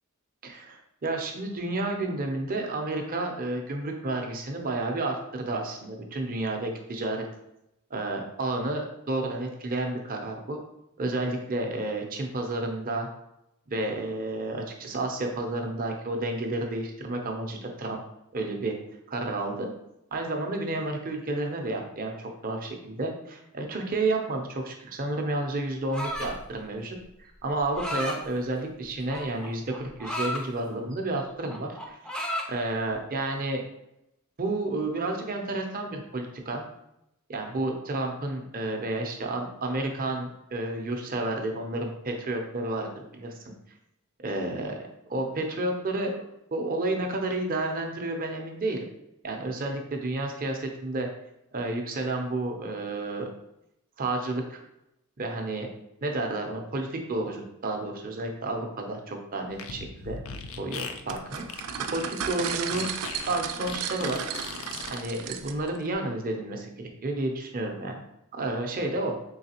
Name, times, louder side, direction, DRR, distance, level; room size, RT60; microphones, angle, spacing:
voice 1, 0.4-7.2 7.9-10.6 11.0-13.1 13.7-18.0 18.3-18.7 19.1-19.7 20.1-32.0 32.5-33.6 34.4-36.7 37.3-43.5 44.2-46.2 46.5-48.9 49.2-51.1 51.5-53.3 54.0-54.6 55.2-55.7 56.0-60.2 60.6-61.4 61.9-62.9 63.3-64.2 64.9-68.0 68.3-69.2, right 2 dB, 40° right, 3 dB, 0.6 m, -31 dB
sound 1, 25.9-26.5 27.5-28.2 29.1-30.4 30.9-31.2 31.5-32.5, equal, 5° left, 0.4 m, -33 dB
Fart, 59.5-65.0, left 5 dB, 65° left, 0.4 m, -39 dB
sound 2, 61.1-65.8, right 8 dB, 85° right, 0.4 m, -34 dB
3.9 x 3.3 x 2.8 m, 0.83 s
head